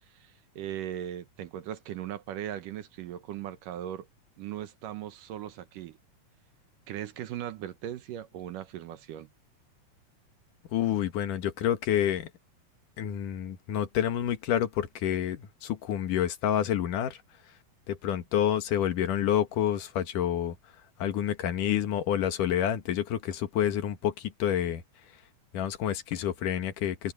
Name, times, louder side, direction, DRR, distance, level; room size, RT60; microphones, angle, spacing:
voice 1, 0.2-4.1 4.4-6.0 6.9-9.3, right 11 dB, 75° right, 2.5 m, -38 dB
voice 2, 10.7-12.3 13.0-17.2 17.9-20.6 21.0-24.8 25.5-27.1, left 10 dB, 70° left, 2.9 m, -28 dB
omnidirectional pair, 4.0 m